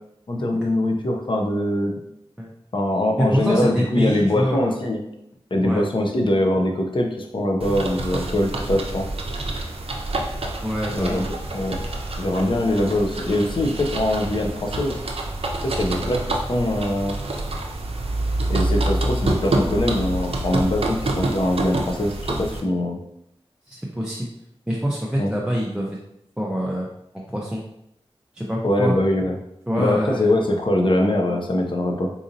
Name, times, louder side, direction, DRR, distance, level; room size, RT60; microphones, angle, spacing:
voice 1, 0.3-2.0 2.7-5.0 5.5-9.1 10.9-11.2 11.5-11.8 12.2-15.0 15.6-17.2 18.5-23.0 25.2-25.4 28.6-29.4 29.8-32.1, left 1 dB, 50° left, 2 dB, 0.6 m, -22 dB
voice 2, 3.2-4.8 5.6-5.8 10.6-11.2 19.5-19.6 23.7-24.3 24.7-26.0 26.4-26.9 27.3-27.6 28.3-29.0 29.7-30.3, equal, 5° right, -3 dB, 0.5 m, -25 dB
sound 1, 7.6-22.6, right 2 dB, 70° right, 0.5 m, -27 dB
4.0 x 2.7 x 2.6 m, 0.80 s
wide cardioid pair, 65°, 10 cm